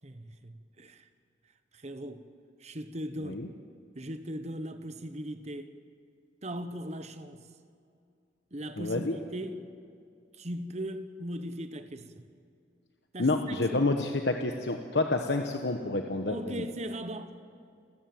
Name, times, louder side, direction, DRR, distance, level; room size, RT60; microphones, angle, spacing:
voice 1, 0.0-1.1 1.7-2.2 2.6-3.4 3.9-5.7 6.4-7.4 8.5-9.7 10.3-12.2 13.1-13.9 16.3-17.3, right 1 dB, 40° right, 1.1 m, -39 dB
voice 2, 8.8-9.2 13.2-16.6, left 2 dB, 70° left, 1.1 m, -29 dB
29.0 x 14.5 x 7.8 m
head